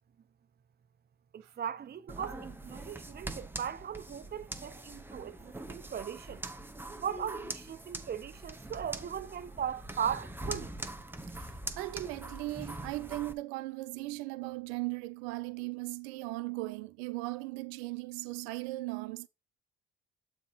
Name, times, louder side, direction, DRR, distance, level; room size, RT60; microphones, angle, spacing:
voice 1, 1.3-6.4 6.9-10.7, right 8 dB, 30° right, 0.6 m, -38 dB
sound 1, 2.1-13.3, right 1 dB, 5° right, 0.9 m, -43 dB
voice 2, 11.3-19.3, right 20 dB, 80° right, 0.5 m, -38 dB
7.2 x 4.1 x 4.2 m
hypercardioid pair, 55°, 31 cm